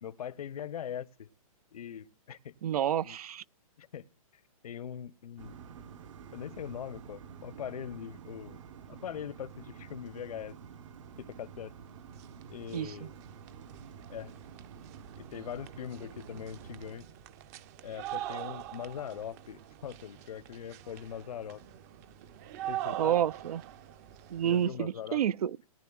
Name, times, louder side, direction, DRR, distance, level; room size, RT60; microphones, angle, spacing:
voice 1, 0.0-1.3 1.7-2.5 3.0-3.2 3.8-4.0 4.6-5.6 6.3-8.6 8.9-10.5 11.2-11.7 12.5-13.1 14.1-14.3 15.2-17.1 17.8-21.6 22.7-23.1 24.4-25.2, left 9 dB, 75° left, 0.8 m, -41 dB
voice 2, 2.6-3.4 12.7-13.1 23.0-23.6 24.3-25.6, right 10 dB, 85° right, 0.5 m, -29 dB
sound 1, 5.4-17.0, right 7 dB, 55° right, 1.0 m, -49 dB
sound 2, 11.6-11.7 12.0-24.7, right 13 dB, 25° right, 0.5 m, -44 dB
19.5 x 10.5 x 2.3 m
hypercardioid pair, 160°, 19 cm